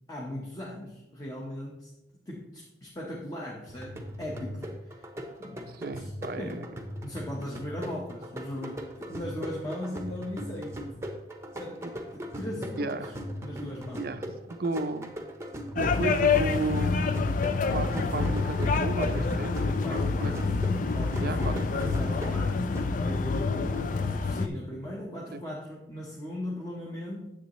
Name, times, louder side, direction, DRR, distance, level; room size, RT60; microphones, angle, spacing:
voice 1, 0.1-1.9 2.3-5.1 5.4-6.1 6.4-6.7 7.0-10.9 11.6-11.8 12.1-13.1 13.4-14.1 18.0-18.4 19.8-20.6 20.9-22.7 23.0-27.3, left 1 dB, 20° left, -4 dB, 1.1 m, -38 dB
sound 1, 3.7-23.3, equal, 15° right, 0.8 m, -39 dB
voice 2, 5.7-6.6 11.8-11.9 12.8-13.1 14.0-15.2 15.7-17.2 17.7-20.4 21.2-21.8 25.3-25.4, right 2 dB, 50° right, 11 dB, 0.5 m, -34 dB
sound 2, 15.8-24.5, left 4 dB, 40° left, 0.4 m, -27 dB
9.9 x 7.5 x 3.1 m, 0.91 s
head